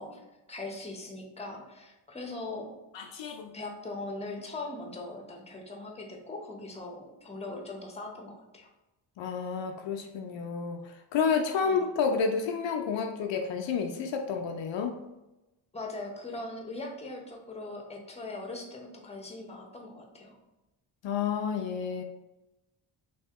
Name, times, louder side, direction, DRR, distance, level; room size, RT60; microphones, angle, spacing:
voice 1, 0.0-2.8 3.5-8.7 11.6-11.8 15.7-20.4, left 2 dB, 15° left, 1 dB, 0.8 m, -40 dB
voice 2, 2.9-3.5 9.2-14.9 21.0-22.0, left 6 dB, 65° left, 4 dB, 0.5 m, -30 dB
2.7 x 2.7 x 3.4 m, 0.96 s
cardioid pair, 70°, 48 cm